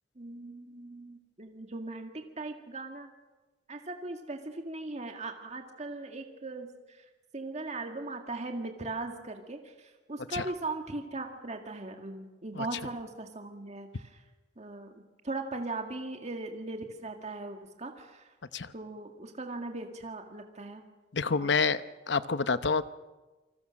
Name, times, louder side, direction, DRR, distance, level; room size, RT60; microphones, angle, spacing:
voice 1, 0.2-3.1 3.7-7.1 7.3-14.2 14.6-18.3 18.7-20.8 21.3-21.5, right 2 dB, 40° right, 4 dB, 2.0 m, -39 dB
voice 2, 21.1-21.8 22.1-22.8, left 5 dB, 75° left, 13 dB, 0.9 m, -27 dB
28.0 x 20.5 x 6.4 m, 1.2 s
head